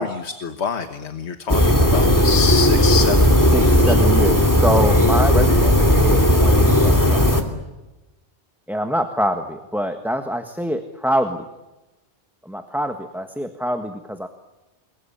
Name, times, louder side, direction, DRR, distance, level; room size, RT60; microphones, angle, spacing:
voice 1, 0.0-3.9, left 6 dB, 75° left, 8 dB, 1.6 m, -26 dB
sound 1, 1.5-7.4, equal, 15° left, 2.7 m, -15 dB
voice 2, 3.5-7.3 8.7-11.4 12.4-14.3, equal, ahead, 6 dB, 1.4 m, -25 dB
28.5 x 22.0 x 8.8 m, 1.0 s
omnidirectional pair, 1.1 m